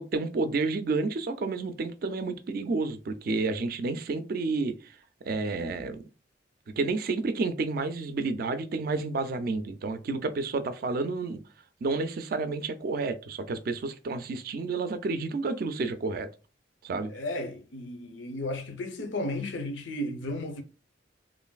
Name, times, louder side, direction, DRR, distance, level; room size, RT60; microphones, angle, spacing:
voice 1, 0.0-5.0 5.2-6.0 6.7-11.4 11.8-16.3 16.8-17.1, right 3 dB, 55° right, 0.3 m, -30 dB
voice 2, 17.1-20.6, left 1 dB, 85° left, 0.6 m, -34 dB
3.2 x 2.5 x 2.2 m
head